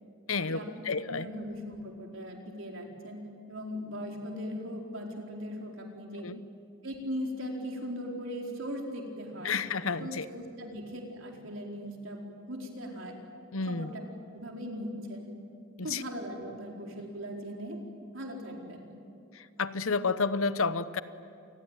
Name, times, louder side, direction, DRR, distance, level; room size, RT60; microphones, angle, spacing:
voice 1, 0.3-1.3 6.2-6.4 9.4-10.3 13.5-13.9 15.8-16.0 19.3-21.0, left 4 dB, 75° left, 14 dB, 1.0 m, -31 dB
voice 2, 1.1-6.2 6.8-13.2 13.7-14.0 14.3-15.3 15.8-17.8 18.1-18.9, equal, 65° right, 1 dB, 4.5 m, -39 dB
28.0 x 21.0 x 9.1 m, 2.5 s
head